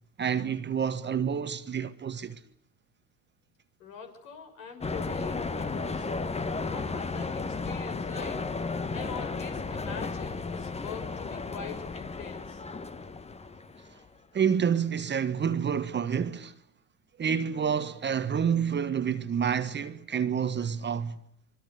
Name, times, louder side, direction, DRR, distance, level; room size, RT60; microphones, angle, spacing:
voice 1, 0.2-2.4 14.3-16.5 17.2-21.2, right 7 dB, 25° right, 1.4 m, -28 dB
voice 2, 3.8-6.1 6.7-8.4 8.9-12.6, left 5 dB, 65° left, 7.0 m, -43 dB
sound 1, 4.8-14.0, left 4 dB, 15° left, 1.3 m, -34 dB
25.5 x 25.0 x 8.1 m
figure-of-eight pair, 75°, 45 cm